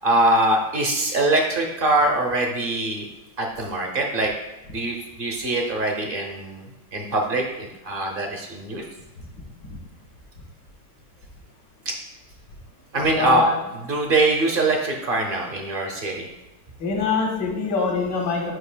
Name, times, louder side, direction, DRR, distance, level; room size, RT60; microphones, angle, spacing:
voice 1, 0.0-3.1 3.4-4.3 4.7-8.8 11.8-11.9 12.9-13.4 13.7-16.3, right 2 dB, 50° right, 1 dB, 0.7 m, -23 dB
voice 2, 13.2-13.5 16.8-18.5, left 4 dB, 75° left, -1 dB, 1.8 m, -23 dB
7.9 x 5.6 x 2.2 m, 0.98 s
omnidirectional pair, 1.9 m